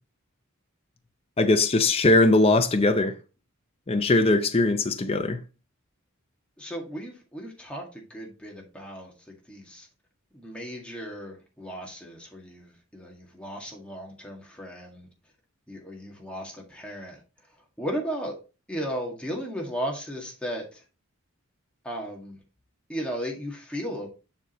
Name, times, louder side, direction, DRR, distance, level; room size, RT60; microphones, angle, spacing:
voice 1, 1.4-3.1 3.9-5.4, left 2 dB, 25° left, 0.6 m, -20 dB
voice 2, 6.6-9.9 10.3-15.1 15.7-17.2 17.8-18.4 18.7-20.8 21.8-22.4 22.9-24.1, equal, 5° left, 1.9 m, -35 dB
7.2 x 6.3 x 3.0 m
head